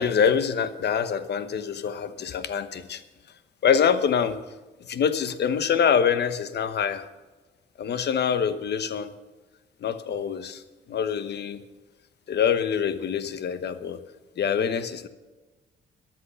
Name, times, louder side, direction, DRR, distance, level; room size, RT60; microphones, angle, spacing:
voice 1, 0.0-3.0 3.6-4.4 4.9-7.1 7.8-9.1 9.8-10.6 10.9-11.6 12.3-14.0 14.4-15.1, left 7 dB, 60° left, 11 dB, 1.1 m, -25 dB
15.0 x 11.0 x 5.7 m, 1.2 s
cardioid pair, 90°, 20 cm